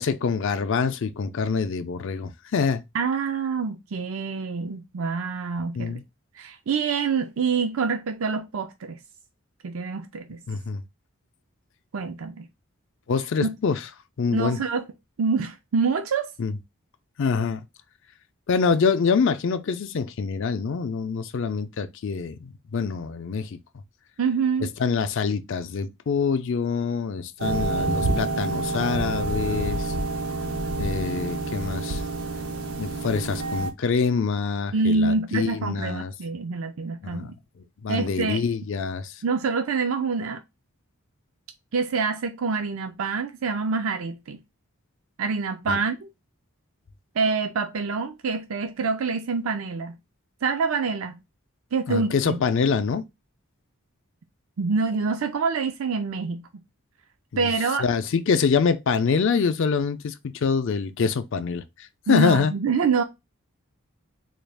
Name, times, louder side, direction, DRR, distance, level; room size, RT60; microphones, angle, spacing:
voice 1, 0.0-2.8 5.7-6.0 10.5-10.8 13.1-13.8 14.2-14.6 16.4-16.6 17.2-17.6 18.5-23.6 24.8-29.9 30.8-32.0 32.8-36.1 37.0-37.3 37.8-39.1 45.7-45.8 51.9-53.0 57.3-57.5 57.8-62.5, left 5 dB, 60° left, 0.4 m, -25 dB
voice 2, 2.9-6.0 6.4-9.0 9.6-10.4 11.9-12.5 13.4-13.5 14.3-14.9 15.2-16.3 24.2-24.7 27.5-28.2 34.7-37.3 37.9-38.4 39.2-40.4 41.7-44.4 45.2-46.1 47.2-50.0 50.4-51.2 51.7-52.4 54.6-56.5 57.4-57.8 62.1-63.0, right 4 dB, 65° right, 0.5 m, -26 dB
sound 1, 27.4-33.7, right 2 dB, 85° right, 0.8 m, -28 dB
3.9 x 2.3 x 3.3 m
head